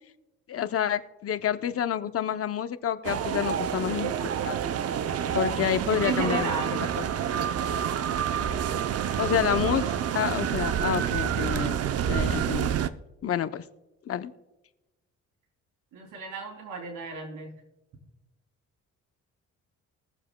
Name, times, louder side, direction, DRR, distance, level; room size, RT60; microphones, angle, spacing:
voice 1, 0.5-4.1 4.4-4.6 5.3-6.5 7.0-7.1 9.2-9.8 10.1-11.8 12.1-12.8 13.2-13.6 14.1-14.3, left 9 dB, 50° left, 12 dB, 0.7 m, -28 dB
sound 1, 3.0-12.9, right 9 dB, 55° right, 0.6 m, -28 dB
voice 2, 5.9-6.8 15.9-17.5, right 5 dB, 80° right, 2 dB, 2.8 m, -33 dB
22.0 x 7.4 x 2.2 m, 1.0 s
cardioid pair, 90°, 30 cm